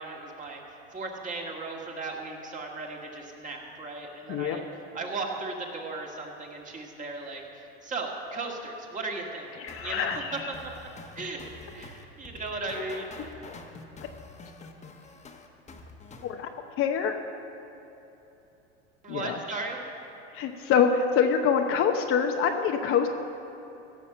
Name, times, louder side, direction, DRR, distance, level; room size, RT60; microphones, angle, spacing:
voice 1, 0.0-4.6 4.9-9.5 9.8-10.7 11.2-11.4 11.7-13.4 19.0-19.8, right 3 dB, 25° right, 0 dB, 1.9 m, -36 dB
voice 2, 9.6-10.4 16.2-16.5 16.8-17.2 19.1-19.4 20.3-23.1, left 7 dB, 40° left, 4 dB, 0.9 m, -25 dB
sound 1, 9.7-16.3, left 3 dB, 20° left, 1.2 m, -46 dB
16.0 x 6.4 x 7.1 m, 3.0 s
hypercardioid pair, 105°, 33 cm